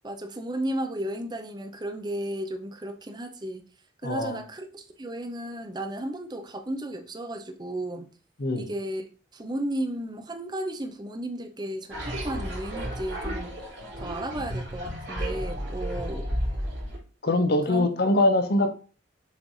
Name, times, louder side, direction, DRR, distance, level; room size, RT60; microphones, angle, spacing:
voice 1, 0.0-3.6 4.0-8.1 8.5-9.0 9.3-13.5 14.0-16.3 17.7-17.9, right 1 dB, 20° right, 5 dB, 0.7 m, -34 dB
voice 2, 4.0-4.4 8.4-8.7 17.2-18.7, left 2 dB, 55° left, 8 dB, 0.8 m, -23 dB
sound 1, 11.9-17.0, equal, 70° right, 2.5 m, -32 dB
7.2 x 3.3 x 4.0 m, 0.37 s
head